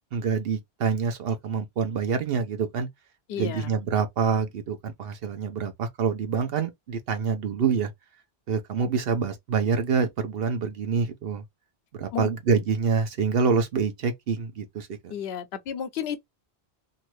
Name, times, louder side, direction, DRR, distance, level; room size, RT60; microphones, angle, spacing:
voice 1, 0.1-2.9 3.4-7.9 8.5-11.4 12.0-15.1, right 5 dB, 65° right, 0.9 m, -26 dB
voice 2, 3.3-3.7 12.1-12.3 15.1-16.2, left 8 dB, 75° left, 0.8 m, -32 dB
2.7 x 2.5 x 3.0 m
omnidirectional pair, 1.1 m